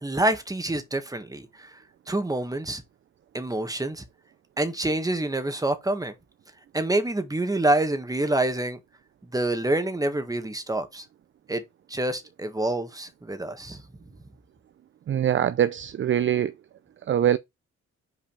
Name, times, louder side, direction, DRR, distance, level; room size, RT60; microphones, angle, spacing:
voice 1, 0.0-1.8 2.1-2.8 3.3-4.0 4.6-6.1 6.7-8.8 9.3-11.0 11.5-11.6 11.9-13.8, right 1 dB, 10° right, 1.6 m, -27 dB
voice 2, 15.1-16.5 17.1-17.4, right 10 dB, 40° right, 0.5 m, -23 dB
5.8 x 4.9 x 4.7 m
cardioid pair, 90°, 30 cm